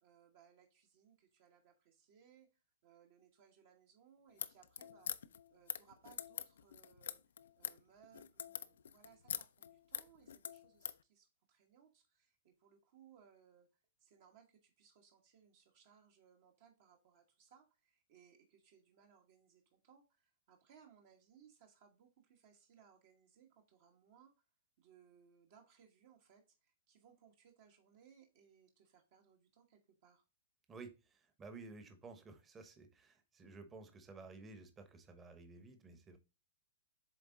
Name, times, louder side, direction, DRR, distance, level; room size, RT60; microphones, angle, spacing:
voice 1, 0.0-5.1 5.5-7.2 7.6-13.7 14.0-24.3 24.8-30.2, right 8 dB, 55° right, 2 dB, 1.2 m, -66 dB
sound 1, 4.3-11.0, left 8 dB, 85° left, 0.4 m, -45 dB
voice 2, 30.7-36.2, right 3 dB, 20° right, 9 dB, 1.0 m, -54 dB
7.6 x 3.5 x 3.7 m, 0.29 s
hypercardioid pair, 135°, 0 cm